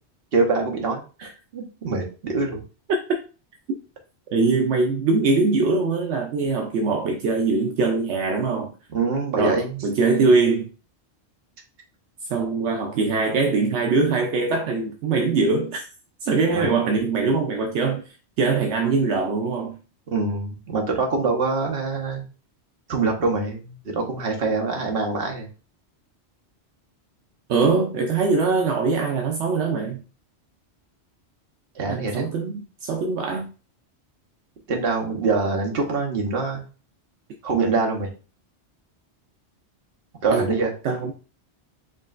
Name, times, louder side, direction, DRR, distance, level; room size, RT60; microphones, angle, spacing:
voice 1, 0.3-2.6 8.9-9.8 16.5-16.8 20.1-22.2 22.9-25.5 31.8-32.2 34.7-36.6 37.4-38.1 40.2-40.7, right 3 dB, 60° right, 1.1 m, -24 dB
voice 2, 4.3-8.7 9.4-10.7 12.3-15.9 16.2-19.8 27.5-30.0 31.9-33.5 40.3-40.6 40.8-41.1, right 4 dB, 75° right, 0.9 m, -22 dB
5.0 x 3.0 x 2.4 m
omnidirectional pair, 1.2 m